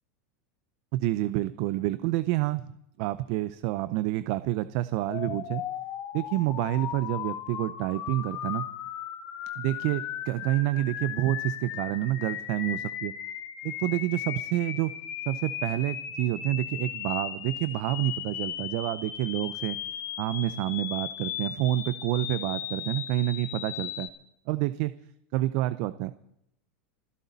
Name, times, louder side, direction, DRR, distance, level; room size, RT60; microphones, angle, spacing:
voice 1, 0.9-2.7 3.0-5.6 6.1-8.7 9.6-13.1 13.6-14.9 15.3-19.8 20.2-24.1 24.5-24.9 25.3-26.2, right 16 dB, 60° right, 14 dB, 0.6 m, -28 dB
sound 1, 5.1-24.1, left 10 dB, 45° left, 2.1 m, -36 dB
26.5 x 12.0 x 4.1 m, 0.78 s
supercardioid pair, 115°, 7 cm